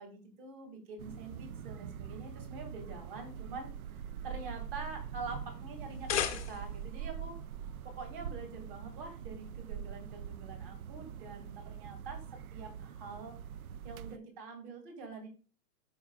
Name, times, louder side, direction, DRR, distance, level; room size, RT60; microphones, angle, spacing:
voice 1, 0.0-7.4 7.8-13.4 13.8-15.3, right 3 dB, 35° right, 3 dB, 2.2 m, -46 dB
sound 1, 1.0-14.2, right 8 dB, 60° right, 0.5 m, -44 dB
sound 2, 5.8-6.9, left 9 dB, 20° left, 0.6 m, -35 dB
13.5 x 4.9 x 2.3 m, 0.35 s
hypercardioid pair, 160°, 50 cm